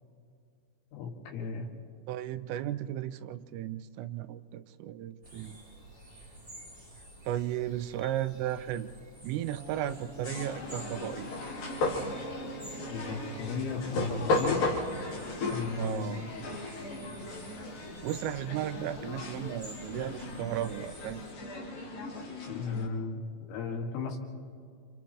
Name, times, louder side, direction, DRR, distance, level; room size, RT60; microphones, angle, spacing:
voice 1, 0.9-1.7 12.9-14.7 15.5-16.1 22.5-23.2 23.5-24.2, left 4 dB, 80° left, 0 dB, 4.4 m, -35 dB
voice 2, 2.1-5.6 7.3-8.9 9.2-11.3 15.7-16.3 18.0-21.3, right 12 dB, 85° right, 12 dB, 3.2 m, -35 dB
sound 1, 5.2-21.3, right 1 dB, 10° right, 2.3 m, -51 dB
Brass instrument, 9.5-13.7, right 3 dB, 65° right, 7.3 m, -47 dB
sound 2, 10.2-22.9, left 2 dB, 50° left, 4.1 m, -35 dB
29.0 x 28.5 x 3.1 m, 2.3 s
omnidirectional pair, 5.7 m